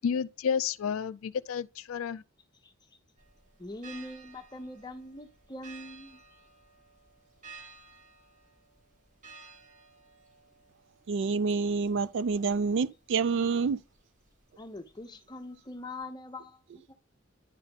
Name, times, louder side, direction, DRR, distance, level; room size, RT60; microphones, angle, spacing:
voice 1, 0.0-2.2, left 7 dB, 80° left, 0.4 m, -31 dB
sound 1, 3.2-16.0, right 4 dB, 35° right, 1.3 m, -55 dB
voice 2, 3.6-6.2 14.6-16.6 16.9-17.0, left 2 dB, 20° left, 0.7 m, -43 dB
voice 3, 11.1-13.8, right 5 dB, 60° right, 0.3 m, -28 dB
10.5 x 3.6 x 3.5 m
head